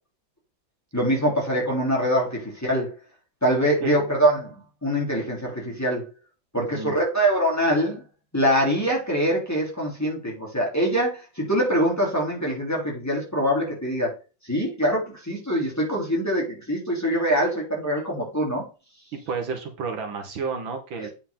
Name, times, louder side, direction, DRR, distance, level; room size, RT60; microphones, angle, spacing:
voice 1, 0.9-2.9 3.4-6.1 6.5-8.0 8.3-14.1 14.5-18.6 21.0-21.1, equal, 10° left, -4 dB, 3.3 m, -24 dB
voice 2, 6.6-7.0 19.1-21.1, right 5 dB, 80° right, 5 dB, 2.1 m, -31 dB
8.6 x 5.4 x 3.8 m, 0.32 s
omnidirectional pair, 2.1 m